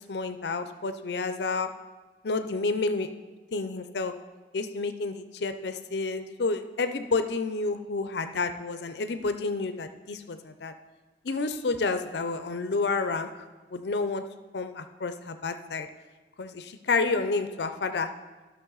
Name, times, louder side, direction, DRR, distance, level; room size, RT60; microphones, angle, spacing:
voice 1, 0.0-1.7 2.2-3.1 3.5-4.2 4.5-10.7 11.2-13.3 13.7-14.2 14.5-15.9 16.4-18.1, left 3 dB, 65° left, 9 dB, 0.6 m, -30 dB
13.0 x 6.1 x 4.0 m, 1.3 s
head